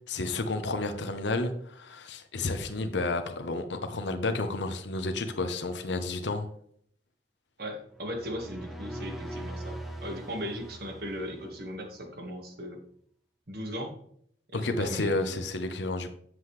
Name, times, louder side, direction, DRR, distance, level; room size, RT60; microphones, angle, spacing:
voice 1, 0.1-6.5 14.5-16.1, left 2 dB, 75° left, 0.8 m, -31 dB
voice 2, 7.6-12.8 13.5-13.9 14.5-15.4, equal, 55° right, 1.7 m, -38 dB
sound 1, 7.9-11.8, right 1 dB, ahead, 1.0 m, -41 dB
7.8 x 7.4 x 3.2 m
head